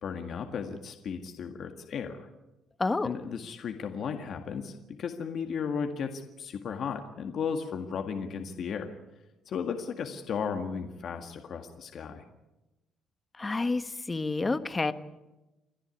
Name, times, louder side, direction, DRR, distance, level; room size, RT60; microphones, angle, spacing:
voice 1, 0.0-2.3 3.0-8.9 9.5-12.2, left 6 dB, 55° left, 5 dB, 1.8 m, -35 dB
voice 2, 13.4-13.8 14.1-14.9, left 3 dB, 20° left, 11 dB, 1.2 m, -28 dB
29.0 x 11.0 x 9.7 m, 1.0 s
cardioid pair, 110°, 0 cm